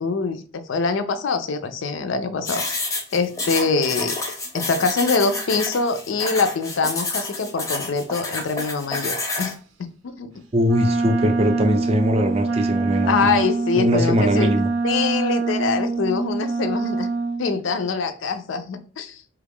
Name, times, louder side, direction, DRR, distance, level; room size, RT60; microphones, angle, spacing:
voice 1, 0.0-2.6 3.1-4.2 4.5-9.6 10.0-10.3 13.1-14.5 14.8-17.1 17.4-19.3, left 4 dB, 75° left, 0.4 m, -24 dB
sound 1, 2.5-9.5, left 2 dB, 15° left, 0.5 m, -29 dB
voice 2, 10.5-13.4 13.8-14.7, equal, 30° right, 0.4 m, -21 dB
Wind instrument woodwind instrument, 10.6-17.4, right 3 dB, 85° right, 0.6 m, -24 dB
3.4 x 2.4 x 3.5 m
head